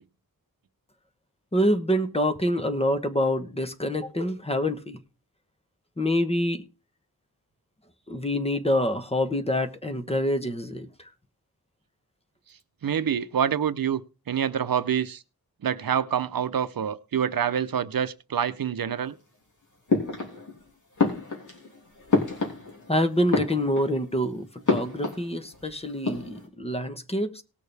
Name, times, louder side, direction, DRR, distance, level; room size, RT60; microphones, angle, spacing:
voice 1, 1.5-5.0 6.0-6.6 8.1-11.1 22.9-27.4, left 1 dB, 15° left, 1.1 m, -26 dB
voice 2, 12.8-14.0 14.3-15.2 15.6-19.1, right 8 dB, 70° right, 0.7 m, -26 dB
sound 1, 19.9-20.6 21.0-22.9 23.2-24.1 24.7-25.6 25.9-26.5, left 4 dB, 55° left, 3.3 m, -28 dB
19.0 x 6.5 x 3.4 m
wide cardioid pair, 115°, 36 cm